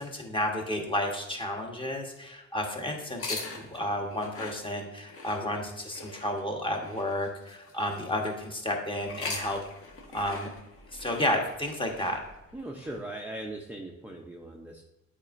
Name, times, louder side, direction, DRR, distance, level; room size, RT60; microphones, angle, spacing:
voice 1, 0.0-9.6 10.1-10.5 10.9-12.2, left 1 dB, 15° left, 1 dB, 1.2 m, -32 dB
sound 1, 3.1-8.5 9.0-13.0, left 3 dB, 50° left, 1.5 m, -42 dB
voice 2, 12.5-14.8, right 1 dB, 5° right, 0 dB, 0.6 m, -39 dB
8.7 x 4.3 x 2.5 m, 0.96 s
cardioid pair, 90°, 30 cm